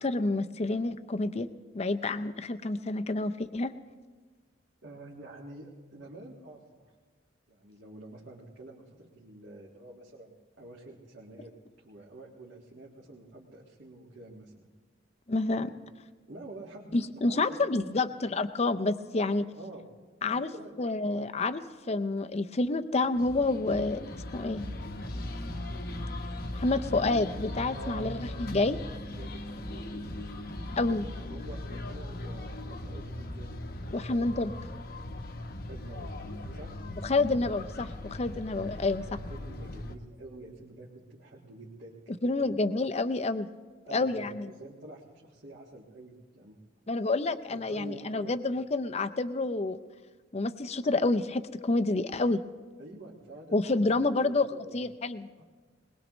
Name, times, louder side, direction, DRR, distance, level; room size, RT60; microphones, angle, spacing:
voice 1, 0.0-1.5 1.7-3.7 15.3-15.7 16.9-19.5 20.2-20.5 20.8-24.0 24.3-24.6 26.5-28.8 30.8-31.0 33.9-34.5 37.0-39.0 42.2-43.5 43.9-44.5 46.9-49.8 50.3-52.4 53.5-54.5 54.7-55.3, left 2 dB, 30° left, 10 dB, 0.5 m, -28 dB
voice 2, 4.8-6.9 7.5-11.5 11.8-14.7 15.7-15.8 16.3-18.1 19.6-19.9 20.3-21.0 27.7-28.3 29.1-30.2 30.9-33.6 34.1-34.4 35.7-36.2 36.5-36.7 38.5-42.5 43.8-46.6 47.5-48.4 52.8-54.8 55.4-55.5, right 2 dB, 65° right, -4 dB, 1.7 m, -48 dB
sound 1, 23.1-40.0, left 1 dB, 50° left, 0.9 m, -39 dB
21.5 x 20.5 x 3.1 m, 1.4 s
head